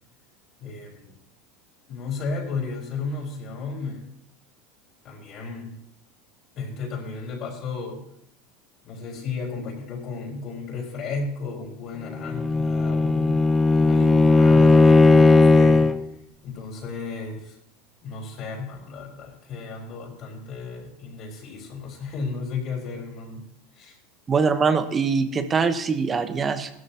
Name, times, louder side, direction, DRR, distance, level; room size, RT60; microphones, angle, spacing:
voice 1, 0.6-1.1 1.9-4.1 5.0-5.8 6.5-8.0 8.8-16.0 16.4-17.6 18.0-24.0, left 4 dB, 50° left, -3 dB, 4.1 m, -34 dB
Bowed string instrument, 12.1-16.0, left 3 dB, 10° left, 0.7 m, -16 dB
voice 2, 24.3-26.7, right 5 dB, 25° right, 10 dB, 1.1 m, -23 dB
16.0 x 13.0 x 2.9 m, 0.72 s
supercardioid pair, 115°, 0 cm